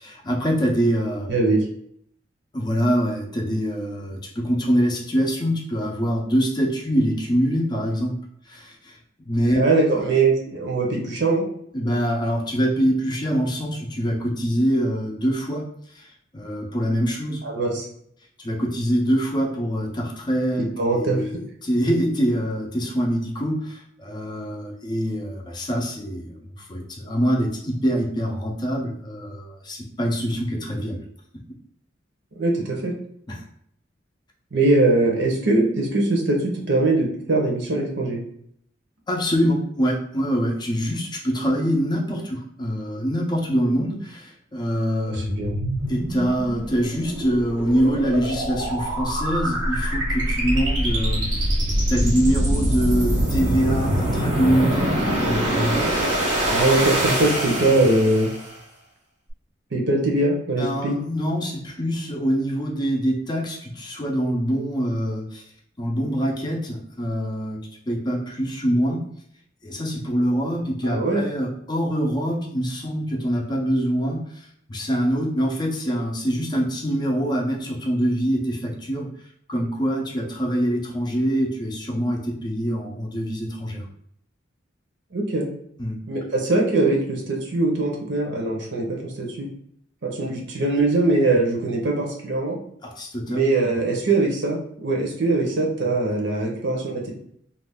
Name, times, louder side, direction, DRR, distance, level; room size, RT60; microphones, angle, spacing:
voice 1, 0.0-1.3 2.5-8.2 8.5-9.0 9.2-9.6 11.7-15.7 16.0-16.1 16.3-17.4 18.4-20.7 20.9-31.0 33.3-33.4 39.1-45.3 45.9-51.5 51.9-55.9 60.6-65.4 65.8-67.6 67.9-69.0 69.6-79.1 79.5-83.9 85.8-86.0 92.8-93.4, equal, 25° left, 0 dB, 0.5 m, -24 dB
voice 2, 9.6-11.4 17.4-17.9 20.8-21.2 32.4-32.9 34.5-38.2 45.1-45.6 56.5-58.3 59.7-61.0 70.8-71.2 85.1-85.5 86.1-89.5 90.0-92.6 93.3-97.1, right 2 dB, 65° right, 0 dB, 0.7 m, -22 dB
sound 1, 45.1-58.5, equal, 90° right, 1.1 m, -24 dB
2.5 x 2.3 x 3.4 m, 0.69 s
head